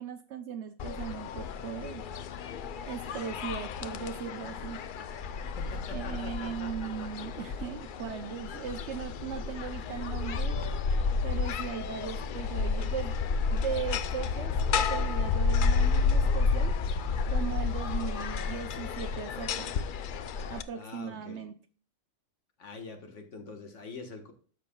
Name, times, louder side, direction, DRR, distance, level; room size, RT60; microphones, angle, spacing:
voice 1, 0.0-2.0 2.9-4.8 5.9-10.6 11.2-13.1 13.5-16.7 17.3-19.7 20.5-21.5, right 8 dB, 60° right, 10 dB, 0.8 m, -38 dB
sound 1, 0.8-20.6, left 5 dB, 80° left, 0.4 m, -31 dB
voice 2, 5.6-7.5 20.7-21.4 22.6-24.3, left 3 dB, 60° left, 5 dB, 1.6 m, -45 dB
13.0 x 6.5 x 2.2 m, 0.43 s
omnidirectional pair, 1.5 m